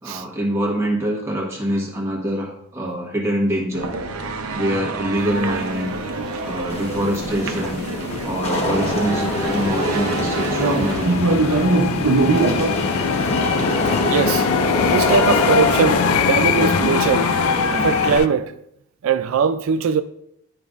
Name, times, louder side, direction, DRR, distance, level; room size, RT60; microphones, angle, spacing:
voice 1, 0.0-3.9 4.5-5.9 6.4-7.8 8.2-11.2, equal, 15° right, 1.3 m, -25 dB
sound 1, 3.7-12.7, right 3 dB, 90° right, 0.7 m, -24 dB
sound 2, 5.2-18.3, left 8 dB, 75° left, 0.3 m, -24 dB
Wind / Rain, 6.7-18.2, equal, 30° left, 1.0 m, -25 dB
voice 2, 14.0-14.5 14.9-17.3 17.7-18.5 19.0-20.0, right 6 dB, 70° right, 0.3 m, -21 dB
11.0 x 5.2 x 2.5 m
head